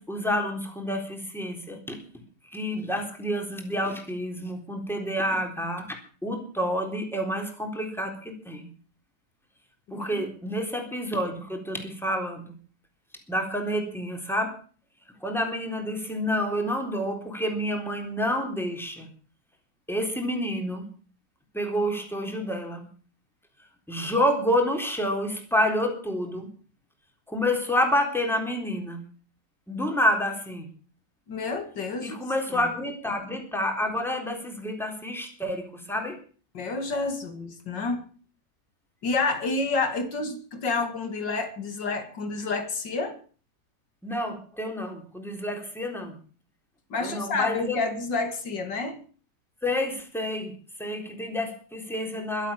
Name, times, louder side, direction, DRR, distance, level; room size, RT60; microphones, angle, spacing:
voice 1, 0.0-2.0 2.5-5.9 6.2-8.7 9.9-12.5 13.3-14.6 15.2-19.1 19.9-20.9 21.5-22.9 23.9-26.5 27.3-29.0 29.7-30.7 32.0-36.2 44.0-46.2 47.0-47.8 49.6-50.5 50.8-52.5, equal, ahead, 3 dB, 3.8 m, -28 dB
voice 2, 9.9-10.2 31.3-32.2 32.5-32.7 36.5-38.1 39.0-43.2 46.9-49.0, left 3 dB, 85° left, 7 dB, 3.0 m, -29 dB
23.0 x 8.4 x 7.2 m, 0.42 s
omnidirectional pair, 1.9 m